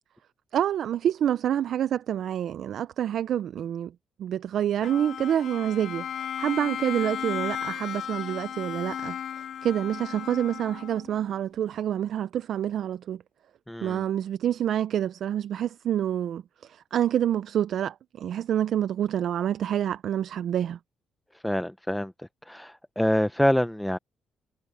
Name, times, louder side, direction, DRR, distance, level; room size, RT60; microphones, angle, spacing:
voice 1, 0.5-3.9 4.2-13.2 13.8-20.8, right 10 dB, 70° right, 0.5 m, -27 dB
Bowed string instrument, 4.8-11.2, left 9 dB, 65° left, 2.8 m, -35 dB
voice 2, 13.7-14.0 21.4-22.1 22.5-24.0, equal, 5° left, 0.7 m, -26 dB
cardioid pair, 90°, 0 cm